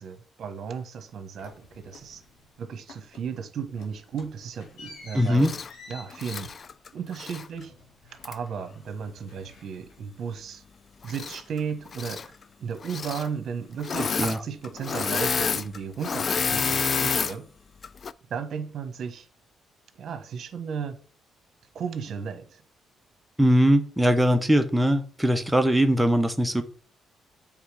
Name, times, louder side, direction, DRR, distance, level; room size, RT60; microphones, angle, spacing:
voice 1, 0.0-2.2 2.6-5.5 5.9-6.5 6.9-7.7 8.2-10.6 11.0-12.2 12.6-17.5 18.3-19.3 20.0-20.9 21.7-22.6, right 6 dB, 60° right, 1.1 m, -35 dB
sound 1, 1.4-2.6 2.9-3.4 3.6-8.6 8.9-10.2, left 3 dB, 90° left, 1.9 m, -50 dB
voice 2, 5.1-5.5 14.2-14.4 23.4-26.6, equal, 5° right, 0.8 m, -21 dB
Engine / Mechanisms, 5.4-5.7 6.1-7.5 8.2-8.3 11.0-11.6 11.9-12.3 12.8-13.3 13.8-14.4 14.6-17.3 17.8-18.1, left 5 dB, 45° left, 0.3 m, -29 dB
8.0 x 3.6 x 4.8 m
cardioid pair, 90°, 0 cm